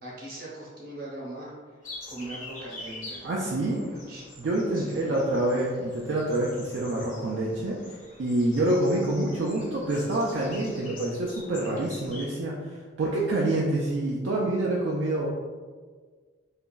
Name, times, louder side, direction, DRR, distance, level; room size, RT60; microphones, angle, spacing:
voice 1, 0.0-1.5 2.1-4.2 4.7-5.2, right 1 dB, 45° right, -6 dB, 0.9 m, -41 dB
sound 1, 1.8-12.2, left 2 dB, 40° left, 0.6 m, -45 dB
voice 2, 3.2-3.8 4.4-15.3, right 1 dB, 65° right, -4 dB, 0.3 m, -27 dB
2.9 x 2.5 x 2.2 m, 1.5 s
head